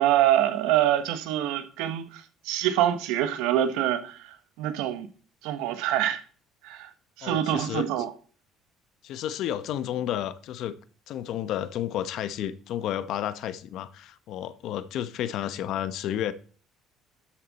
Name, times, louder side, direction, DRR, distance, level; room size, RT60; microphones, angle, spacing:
voice 1, 0.0-4.2 4.6-5.1 5.4-6.2 6.6-6.9 7.2-8.1, right 12 dB, 90° right, 1.2 m, -25 dB
voice 2, 7.2-8.1 9.0-10.7 11.1-16.3, left 11 dB, 65° left, 0.9 m, -31 dB
12.5 x 7.5 x 4.1 m
cardioid pair, 120°, 0 cm